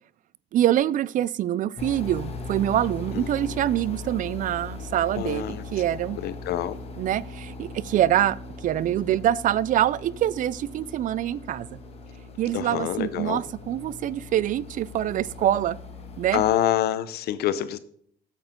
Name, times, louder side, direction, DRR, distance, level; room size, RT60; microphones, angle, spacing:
voice 1, 0.5-6.2 7.0-11.8 12.4-15.8 16.2-16.4, right 12 dB, 50° right, 21 dB, 0.4 m, -25 dB
sound 1, 1.8-16.5, left 3 dB, 35° left, 1.5 m, -39 dB
voice 2, 3.1-3.6 5.2-5.6 6.2-6.8 12.5-13.4 16.3-17.8, left 12 dB, 70° left, 15 dB, 0.8 m, -26 dB
8.7 x 7.9 x 3.7 m, 0.64 s
cardioid pair, 110°, 17 cm